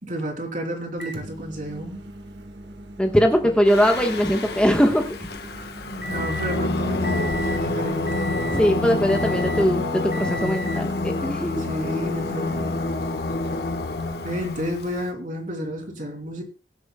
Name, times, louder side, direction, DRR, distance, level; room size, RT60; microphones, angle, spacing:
voice 1, 0.0-2.0 6.1-8.3 11.6-12.7 14.2-16.4, equal, 50° right, 2 dB, 3.1 m, -31 dB
Microwave oven, 1.0-6.6 7.0-7.7 8.1-8.7 9.1-9.7 10.1-10.9 11.9-12.0 14.0-14.1, equal, 85° right, 1.6 m, -37 dB
voice 2, 3.0-5.1 8.5-11.6, equal, 5° left, 3 dB, 1.2 m, -20 dB
Singing, 3.7-15.0, left 2 dB, 65° left, 1.3 m, -27 dB
23.0 x 7.9 x 2.3 m, 0.32 s
head